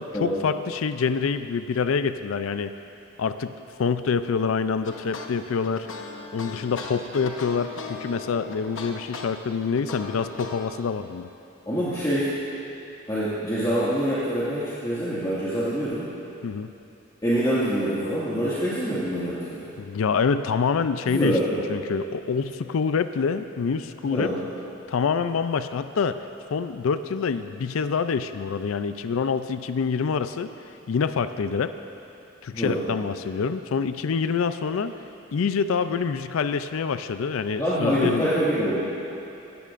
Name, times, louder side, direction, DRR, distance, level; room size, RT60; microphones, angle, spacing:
voice 1, 0.0-2.7 3.2-3.5 3.8-5.9 6.3-11.3 16.4-16.7 19.8-21.4 21.7-24.3 24.9-26.2 26.5-30.5 30.9-31.7 32.4-34.9 35.3-38.2, left 5 dB, 85° left, 11 dB, 0.4 m, -26 dB
sound 1, 4.8-10.7, left 4 dB, 65° left, 1.0 m, -37 dB
voice 2, 11.7-12.3 13.1-16.1 17.2-19.7 21.1-21.6 24.0-24.4 32.5-32.8 37.6-38.8, equal, 20° left, -12 dB, 2.0 m, -25 dB
18.5 x 14.0 x 2.5 m, 2.9 s
head